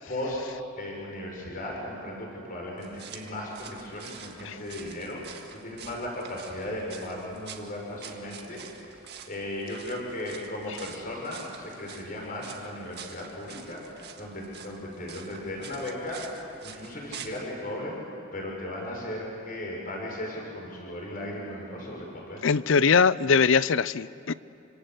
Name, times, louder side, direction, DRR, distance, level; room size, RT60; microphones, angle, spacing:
voice 1, 0.1-0.4 0.8-9.0 9.2-18.0 18.3-22.4, left 1 dB, 45° left, 6.8 m, -36 dB
sound 1, 2.8-17.4, right 7 dB, 55° right, 1.8 m, -47 dB
voice 2, 22.4-24.3, left 5 dB, 65° left, 0.6 m, -21 dB
28.0 x 26.0 x 8.2 m
head